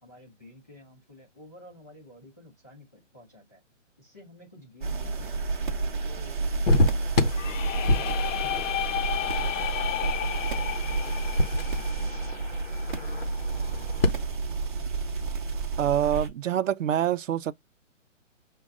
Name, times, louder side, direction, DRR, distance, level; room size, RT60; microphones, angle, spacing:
voice 1, 0.0-3.6 4.0-5.4 6.0-7.4 7.7-10.1 10.4-12.4, left 1 dB, 15° left, 0.7 m, -52 dB
sound 1, 4.8-16.3, right 4 dB, 40° right, 0.9 m, -30 dB
sound 2, 6.6-14.1, left 1 dB, 50° left, 0.8 m, -29 dB
sound 3, 7.3-13.1, left 11 dB, 85° left, 0.5 m, -33 dB
voice 2, 15.8-17.5, right 10 dB, 80° right, 0.6 m, -25 dB
6.3 x 2.3 x 3.6 m
hypercardioid pair, 180°, 38 cm